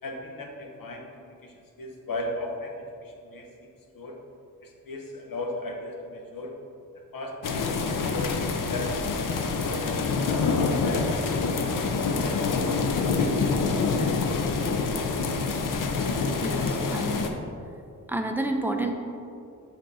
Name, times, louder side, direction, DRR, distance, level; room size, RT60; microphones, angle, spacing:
voice 1, 0.0-3.7 3.9-4.2 4.6-6.5 7.1-11.7 12.3-13.9, left 1 dB, 90° left, 1 dB, 1.0 m, -37 dB
sound 1, 7.4-17.3, left 4 dB, 70° left, 0.6 m, -26 dB
voice 2, 16.4-17.2 18.1-18.9, right 2 dB, 5° right, 4 dB, 0.4 m, -29 dB
7.7 x 3.7 x 4.1 m, 2.5 s
wide cardioid pair, 145°, 33 cm